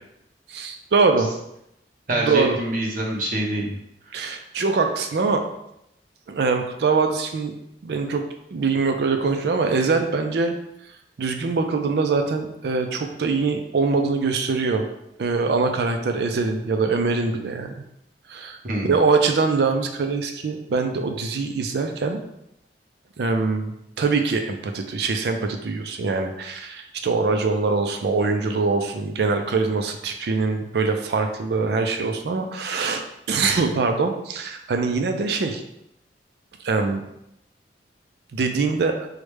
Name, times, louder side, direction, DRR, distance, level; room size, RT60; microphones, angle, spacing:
voice 1, 0.5-1.3 2.2-2.6 4.1-5.4 6.3-7.5 7.8-8.2 8.5-10.5 11.2-14.9 15.2-17.7 18.3-18.6 18.8-22.2 23.2-33.0 33.3-35.6 36.6-37.1 38.3-39.1, right 4 dB, 65° right, 5 dB, 0.4 m, -23 dB
voice 2, 2.1-3.8 18.6-18.9, right 1 dB, 50° right, -2 dB, 0.8 m, -25 dB
4.7 x 2.1 x 3.2 m, 0.81 s
head